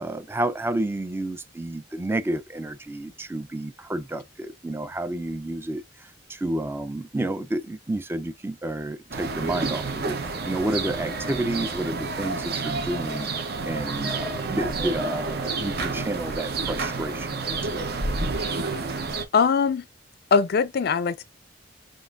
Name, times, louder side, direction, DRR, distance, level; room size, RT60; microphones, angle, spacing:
voice 1, 0.0-17.8, right 1 dB, 15° right, 0.4 m, -30 dB
sound 1, 9.1-19.3, right 3 dB, 60° right, 0.8 m, -29 dB
voice 2, 19.3-19.8 20.3-21.2, left 5 dB, 55° left, 0.4 m, -21 dB
5.2 x 2.5 x 2.4 m
head